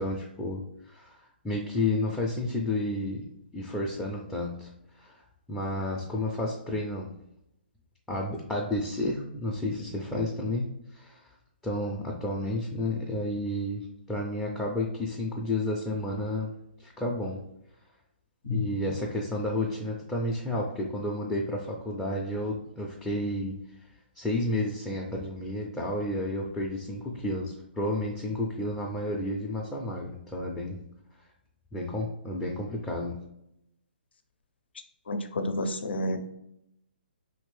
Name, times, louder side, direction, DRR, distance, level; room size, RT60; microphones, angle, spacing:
voice 1, 0.0-4.7 5.0-5.2 5.5-7.2 8.1-11.3 11.6-16.5 16.8-17.4 18.4-23.6 24.2-30.8 31.7-33.2, left 1 dB, 5° left, -4 dB, 0.4 m, -31 dB
voice 2, 18.4-18.9 35.1-36.2, left 2 dB, 75° left, 7 dB, 0.5 m, -30 dB
2.9 x 2.6 x 3.2 m, 0.81 s
hypercardioid pair, 145°, 6 cm